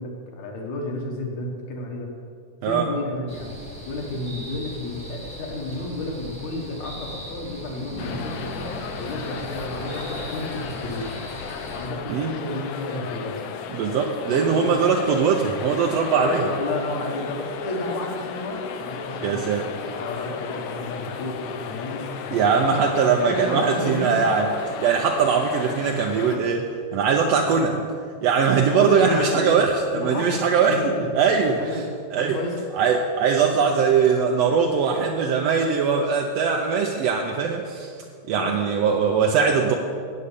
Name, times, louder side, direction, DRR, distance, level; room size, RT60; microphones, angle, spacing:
voice 1, 0.0-2.1 2.6-3.5 3.9-11.1 11.7-13.3 14.3-15.0 16.2-22.8 23.2-24.2 28.7-29.6 29.9-30.4 30.7-31.1 31.5-31.8 32.2-32.6 38.3-38.5, left 2 dB, 65° left, 0 dB, 2.7 m, -31 dB
sound 1, 3.3-11.9, right 1 dB, 5° left, 0.7 m, -39 dB
sound 2, 7.9-11.9, right 1 dB, 40° left, 1.1 m, -42 dB
sound 3, 8.0-26.4, left 6 dB, 90° left, 2.3 m, -35 dB
voice 2, 13.7-16.4 19.2-19.7 22.3-24.5 24.8-26.7 26.9-27.9 28.2-30.8 31.2-31.9 32.1-32.4 32.7-37.9 38.3-39.7, right 6 dB, 80° right, 1 dB, 1.5 m, -21 dB
8.5 x 6.7 x 8.3 m, 2.2 s
omnidirectional pair, 3.5 m